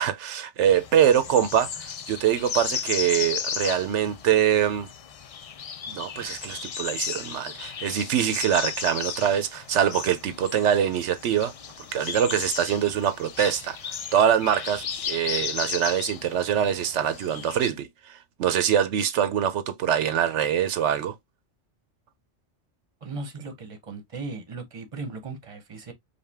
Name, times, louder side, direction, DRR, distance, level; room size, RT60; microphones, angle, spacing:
voice 1, 0.0-4.9 5.9-11.5 11.9-13.8 14.1-21.1, right 9 dB, 85° right, 0.9 m, -24 dB
sound 1, 0.7-17.7, left 7 dB, 60° left, 0.3 m, -35 dB
voice 2, 23.0-25.9, right 3 dB, 30° right, 0.9 m, -37 dB
5.1 x 2.3 x 3.4 m
omnidirectional pair, 1.2 m